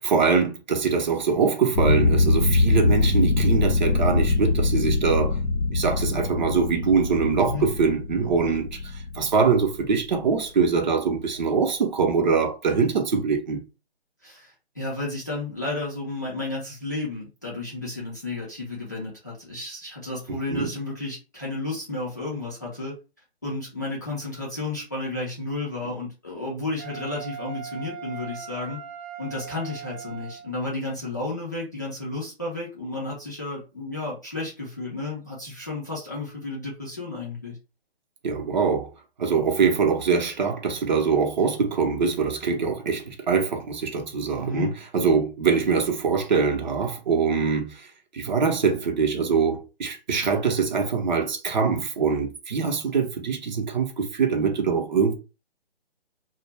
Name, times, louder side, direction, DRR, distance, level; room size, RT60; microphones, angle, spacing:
voice 1, 0.0-5.4 5.7-13.6 20.5-20.7 38.2-38.9 39.2-47.9 48.1-55.1, right 5 dB, 45° right, 0.6 m, -23 dB
sound 1, 1.7-10.2, left 3 dB, 90° left, 0.6 m, -23 dB
voice 2, 14.2-22.9 23.4-28.8 29.2-37.6 44.4-44.7, left 2 dB, 20° left, 0.4 m, -32 dB
Wind instrument woodwind instrument, 26.8-30.5, right 8 dB, 30° right, 1.0 m, -39 dB
2.2 x 2.0 x 3.2 m
figure-of-eight pair, 145°, 32 cm